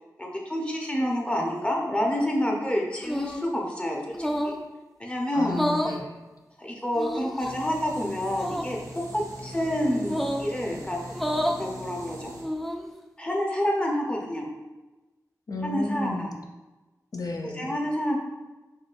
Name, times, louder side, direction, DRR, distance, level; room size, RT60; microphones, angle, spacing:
voice 1, 0.2-4.0 4.4-4.5 5.0-5.6 6.6-8.8 9.1-11.0 11.6-12.3 13.2-14.5 15.6-16.3 17.5-18.2, equal, 15° left, -1 dB, 0.7 m, -28 dB
sound 1, 3.0-3.5 4.1-4.6 5.4-6.0 6.9-7.5 8.3-8.7 10.0-10.5 11.1-11.6 12.3-12.9, equal, ahead, 0.3 m, -29 dB
voice 2, 5.3-6.2 15.5-16.3 17.1-17.7, left 2 dB, 65° left, 3 dB, 0.5 m, -32 dB
sound 2, 7.4-12.4, equal, 70° right, 0.8 m, -41 dB
4.5 x 3.1 x 2.5 m, 1.2 s
wide cardioid pair, 65°, 7 cm